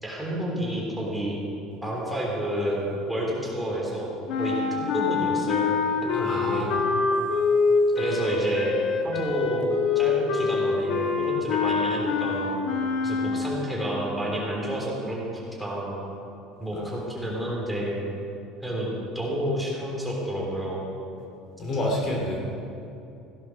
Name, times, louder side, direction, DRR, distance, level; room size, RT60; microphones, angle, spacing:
voice 1, 0.0-1.4 1.8-2.8 3.1-4.1 4.4-4.6 4.9-5.7 6.0-6.7 8.0-8.8 9.0-12.6 13.0-16.0 16.6-18.0 18.6-18.9 19.1-20.8, equal, ahead, -4 dB, 3.6 m, -30 dB
sound 1, 4.3-13.8, left 4 dB, 65° left, 1.4 m, -25 dB
voice 2, 6.2-6.8 21.6-22.4, left 1 dB, 35° left, -1 dB, 2.6 m, -28 dB
16.0 x 11.0 x 6.3 m, 2.8 s
cardioid pair, 140°, 0 cm